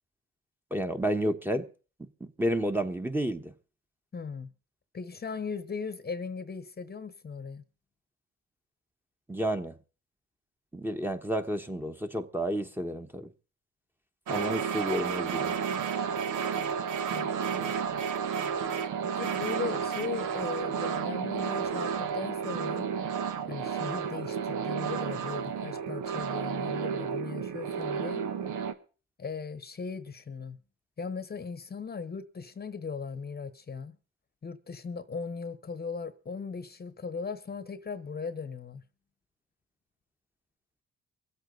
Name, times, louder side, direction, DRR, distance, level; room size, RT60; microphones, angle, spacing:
voice 1, 0.7-1.7 2.0-3.5 9.3-9.8 10.7-13.3 14.3-15.6, right 1 dB, 5° right, 1.1 m, -31 dB
voice 2, 4.1-4.5 4.9-7.6 17.1-17.7 19.0-22.9 23.5-28.2 29.2-30.6 31.0-34.0 34.4-38.8, left 5 dB, 30° left, 1.0 m, -38 dB
sound 1, 14.3-28.7, right 7 dB, 90° right, 1.2 m, -32 dB
24.0 x 8.2 x 3.9 m
cardioid pair, 90°, 30 cm